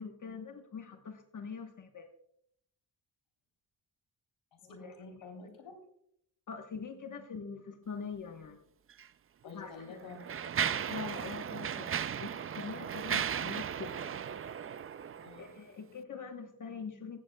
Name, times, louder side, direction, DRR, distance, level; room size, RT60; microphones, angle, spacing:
voice 1, 0.0-2.1 4.8-4.9 6.5-8.6 9.4-10.0 10.9-14.2 15.4-17.2, left 5 dB, 40° left, 5 dB, 1.1 m, -43 dB
voice 2, 4.7-5.7 9.4-10.3 15.2-15.5, left 3 dB, 80° left, 3 dB, 3.4 m, -48 dB
Mechanisms, 8.9-9.1 9.8-15.5, right 8 dB, 30° right, 0.4 m, -36 dB
16.5 x 14.0 x 2.2 m, 0.71 s
cardioid pair, 115°, 45 cm